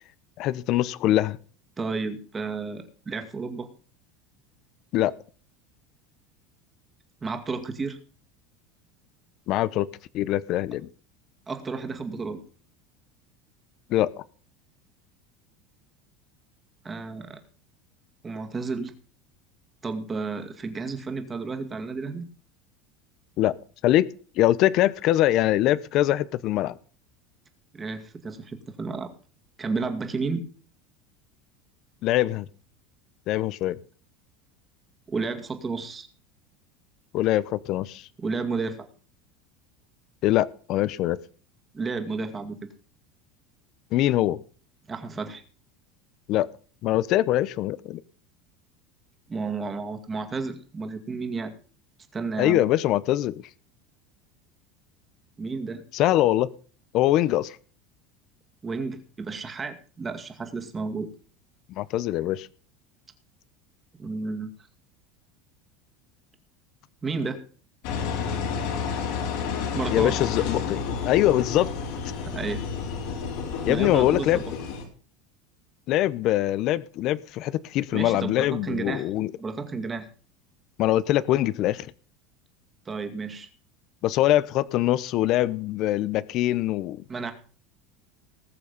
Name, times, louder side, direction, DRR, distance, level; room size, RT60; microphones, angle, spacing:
voice 1, 0.4-1.4 4.9-5.1 9.5-9.9 10.1-10.9 13.9-14.1 23.4-23.5 23.8-24.1 24.4-26.7 32.0-32.5 33.3-33.8 37.1-38.0 40.2-41.2 43.9-44.4 46.3-46.5 46.8-48.0 52.4-53.3 55.9-56.5 56.9-57.6 61.8-62.5 69.9-71.7 73.6-74.5 75.9-79.3 80.8-81.9 84.0-87.0, left 14 dB, 50° left, 19 dB, 0.7 m, -23 dB
voice 2, 1.8-3.7 7.2-8.0 11.5-12.4 16.8-17.4 18.2-18.9 19.8-22.3 27.7-29.1 29.6-30.4 35.1-36.1 38.2-38.9 41.7-42.6 44.9-45.4 49.3-51.5 52.1-52.6 55.4-55.8 58.6-61.1 64.0-64.5 67.0-67.4 69.7-70.2 72.2-72.7 73.7-74.4 77.9-79.1 79.4-80.1 82.9-83.5 87.1-87.3, right 4 dB, 20° right, 6 dB, 2.1 m, -32 dB
Engine, 67.8-74.8, left 6 dB, 70° left, 4.7 m, -30 dB
19.5 x 6.9 x 5.4 m, 0.41 s
supercardioid pair, 140°, 0 cm